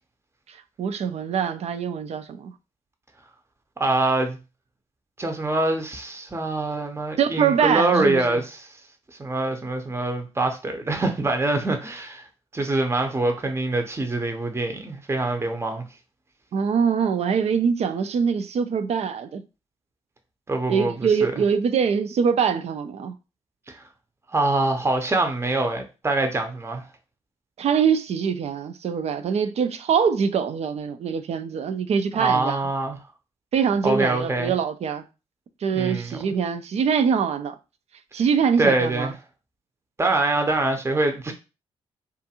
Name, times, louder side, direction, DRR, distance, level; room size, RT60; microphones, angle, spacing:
voice 1, 0.5-2.5 7.2-8.4 16.5-19.4 20.7-23.1 27.6-32.6 33.5-35.0 35.6-37.5 38.1-39.1, right 6 dB, 55° right, 0.4 m, -23 dB
voice 2, 3.8-4.4 5.2-8.8 9.2-12.2 12.5-15.8 20.5-20.9 21.2-21.3 23.7-23.9 24.3-26.8 32.2-33.0 33.8-34.5 35.7-36.2 38.6-39.1 40.0-41.3, right 2 dB, 20° right, 0.6 m, -24 dB
2.5 x 2.4 x 2.8 m
hypercardioid pair, 40°, 13 cm